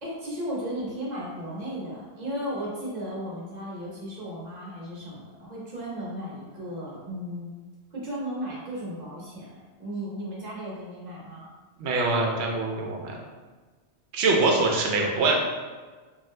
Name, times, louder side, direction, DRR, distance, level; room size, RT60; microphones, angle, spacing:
voice 1, 0.0-7.5 7.9-11.5, equal, 40° right, -6 dB, 0.9 m, -35 dB
voice 2, 11.8-13.2 14.1-15.4, right 3 dB, 75° right, 0 dB, 0.9 m, -24 dB
2.7 x 2.3 x 3.1 m, 1.4 s
omnidirectional pair, 1.1 m